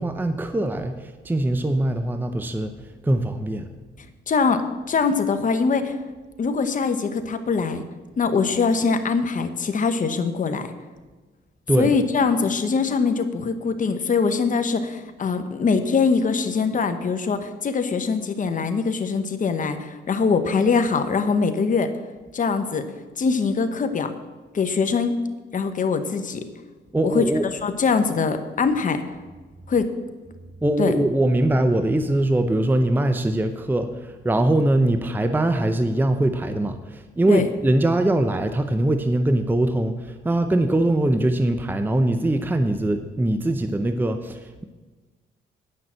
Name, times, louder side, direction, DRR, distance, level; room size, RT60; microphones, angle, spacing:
voice 1, 0.0-3.7 11.7-11.9 26.9-27.5 30.6-44.6, right 1 dB, 10° right, 8 dB, 0.6 m, -22 dB
voice 2, 4.3-4.6 4.9-6.0 6.4-7.8 8.2-10.7 11.8-21.9 22.3-22.9 23.2-24.1 24.5-25.1 25.5-26.5 27.0-27.3 27.6-29.0 29.7-29.9 30.8-30.9 37.3-37.5, left 5 dB, 40° left, 8 dB, 1.1 m, -22 dB
9.6 x 6.0 x 7.4 m, 1.3 s
cardioid pair, 90°, 20 cm